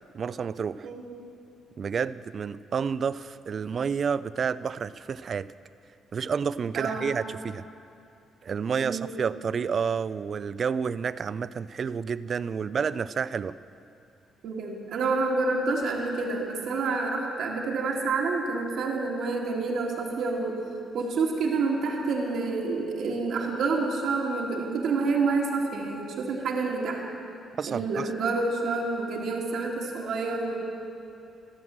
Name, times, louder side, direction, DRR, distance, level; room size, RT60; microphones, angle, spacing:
voice 1, 0.1-0.9 1.8-5.5 6.1-7.6 8.4-13.5 27.6-28.1, right 6 dB, 50° right, 17 dB, 0.3 m, -30 dB
voice 2, 6.8-7.1 8.8-9.1 14.4-20.6 20.9-27.0 27.7-30.7, right 3 dB, 75° right, -2 dB, 1.8 m, -28 dB
15.5 x 6.2 x 7.3 m, 2.6 s
cardioid pair, 90°, 0 cm